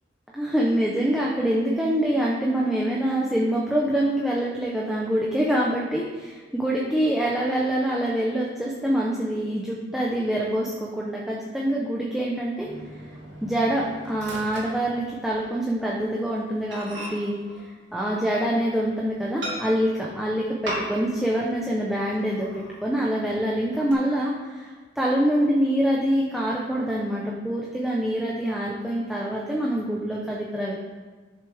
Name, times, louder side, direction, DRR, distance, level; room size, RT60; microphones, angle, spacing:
voice 1, 0.3-12.7 13.4-17.3 17.9-24.7 25.0-30.7, right 1 dB, ahead, -4 dB, 0.9 m, -25 dB
Microwave oven, 12.6-15.5 15.8-16.0 16.4-16.5 16.7-18.8 19.4-20.0 20.6-21.2 21.5-21.6 22.1-22.8 23.3-23.9, equal, 80° right, 3.0 m, -38 dB
11.5 x 6.9 x 3.6 m, 1.4 s
head